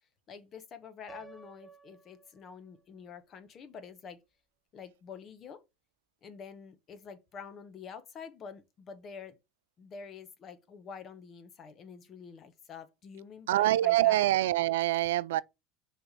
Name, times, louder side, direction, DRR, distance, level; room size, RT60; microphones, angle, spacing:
voice 1, 0.3-4.2 4.7-5.6 6.2-9.4 9.8-14.3, left 6 dB, 45° left, 1.2 m, -47 dB
Piano, 1.1-3.0, right 5 dB, 5° left, 0.9 m, -54 dB
voice 2, 13.5-15.4, right 15 dB, 85° right, 0.3 m, -25 dB
6.0 x 3.4 x 5.2 m
supercardioid pair, 95°, 0 cm